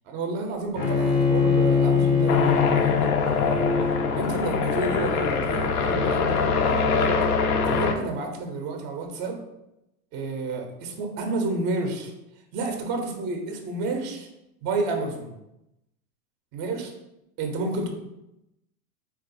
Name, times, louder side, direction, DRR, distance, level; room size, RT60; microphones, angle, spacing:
voice 1, 0.1-3.7 4.2-7.2 7.7-9.4 10.1-12.1 12.5-14.3 14.6-15.3 16.5-16.9 17.4-17.9, right 3 dB, 25° right, 4 dB, 0.4 m, -30 dB
Bowed string instrument, 0.7-5.8, left 5 dB, 25° left, 0.5 m, -24 dB
sound 1, 2.3-7.9, left 5 dB, 80° left, 0.6 m, -23 dB
3.7 x 2.3 x 2.5 m, 0.88 s
hypercardioid pair, 115°, 45 cm